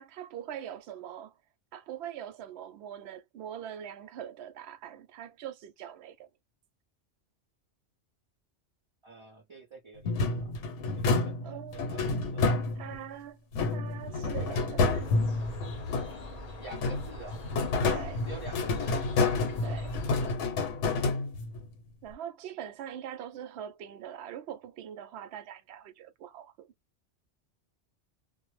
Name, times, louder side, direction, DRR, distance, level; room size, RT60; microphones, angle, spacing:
voice 1, 0.0-1.3 1.7-6.3 11.4-12.2 12.8-13.4 13.7-15.1 17.9-18.3 19.6-20.0 22.0-26.7, right 10 dB, 70° right, 0.8 m, -42 dB
voice 2, 9.0-10.5 11.1-12.6 16.6-17.4 18.3-19.0, right 3 dB, 40° right, 0.4 m, -48 dB
sound 1, 10.0-13.1 13.5-16.4 16.7-21.6, left 3 dB, 80° left, 1.0 m, -29 dB
sound 2, 14.9-20.4, left 2 dB, 45° left, 0.5 m, -43 dB
2.1 x 2.0 x 3.0 m
omnidirectional pair, 1.2 m